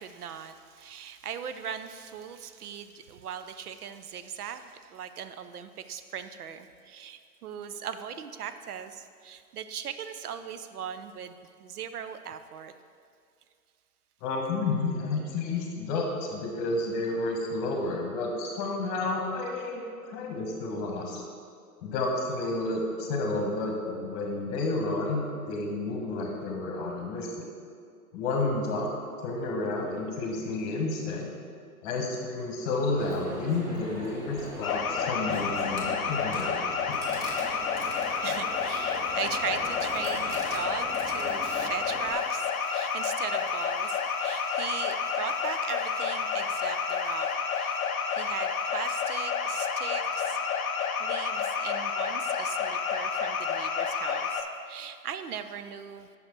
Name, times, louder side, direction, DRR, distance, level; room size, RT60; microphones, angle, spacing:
voice 1, 0.0-12.7 37.3-50.4 50.8-56.1, right 8 dB, 75° right, 10 dB, 0.6 m, -39 dB
voice 2, 14.2-21.2 21.8-27.3 28.1-28.9 29.2-31.3 31.8-36.6 36.9-37.0, left 2 dB, 30° left, 1 dB, 1.2 m, -31 dB
Coin (dropping), 33.0-42.1, right 1 dB, 10° right, 0.6 m, -40 dB
sound 1, 34.6-54.4, left 6 dB, 65° left, 0.8 m, -30 dB
6.4 x 5.8 x 4.6 m, 2.3 s
hypercardioid pair, 125°, 46 cm